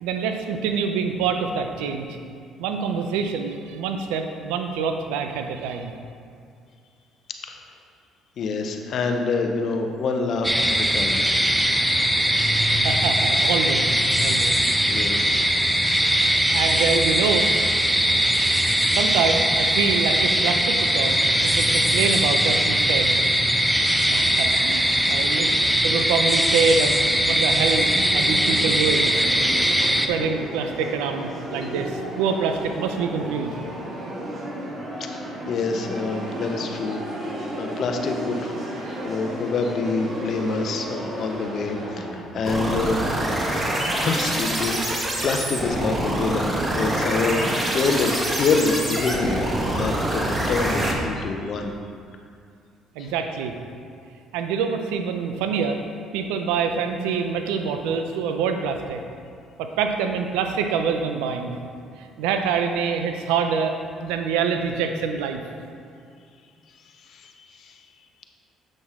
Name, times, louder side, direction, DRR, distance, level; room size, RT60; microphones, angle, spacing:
voice 1, 0.0-2.1 2.6-5.9 12.6-13.9 14.2-14.5 16.5-17.5 17.9-18.0 18.9-21.2 21.4-23.2 24.1-29.1 29.5-29.6 30.1-33.5 52.9-53.5 54.3-55.8 56.1-59.0 59.6-61.6 62.0-65.4, right 6 dB, 85° right, 6 dB, 0.6 m, -26 dB
voice 2, 8.4-11.2 14.3-14.5 14.8-16.2 35.1-35.2 35.5-38.5 38.9-43.0 43.3-51.7 53.0-53.1 67.0-67.8, left 4 dB, 60° left, 4 dB, 0.8 m, -27 dB
sound 1, 10.4-30.1, equal, 5° right, 0.6 m, -20 dB
sound 2, 26.1-43.8, right 1 dB, 40° right, 1.9 m, -34 dB
sound 3, 42.4-50.9, right 1 dB, 25° right, 1.4 m, -25 dB
7.6 x 6.2 x 3.7 m, 2.3 s
supercardioid pair, 65°, 0 cm